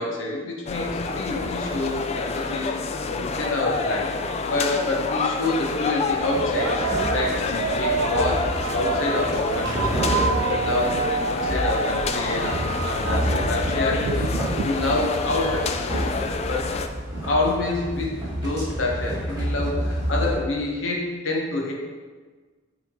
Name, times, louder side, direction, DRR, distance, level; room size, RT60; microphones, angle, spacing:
voice 1, 0.0-2.7 3.1-4.2 4.4-11.0 11.3-14.3 14.6-16.7 17.2-21.7, left 2 dB, 75° left, -1 dB, 1.0 m, -28 dB
sound 1, 0.7-16.9, left 4 dB, 30° left, 0.3 m, -28 dB
sound 2, 5.2-5.4 6.3-15.2, right 6 dB, 90° right, 0.3 m, -29 dB
sound 3, 6.0-20.3, equal, 20° right, 1.8 m, -30 dB
7.3 x 3.7 x 3.7 m, 1.4 s
head